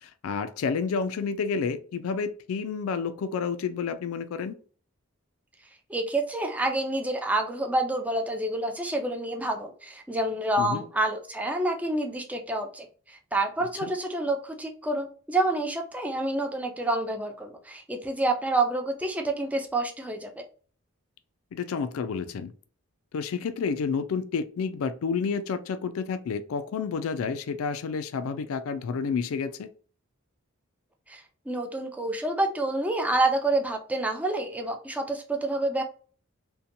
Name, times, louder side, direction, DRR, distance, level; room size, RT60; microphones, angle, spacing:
voice 1, 0.0-4.6 10.6-10.8 13.8-13.9 21.5-22.5 23.1-29.7, left 5 dB, 80° left, 11 dB, 0.4 m, -30 dB
voice 2, 5.9-20.4 31.1-35.8, right 2 dB, 5° right, 4 dB, 0.3 m, -28 dB
2.7 x 2.2 x 2.5 m, 0.42 s
head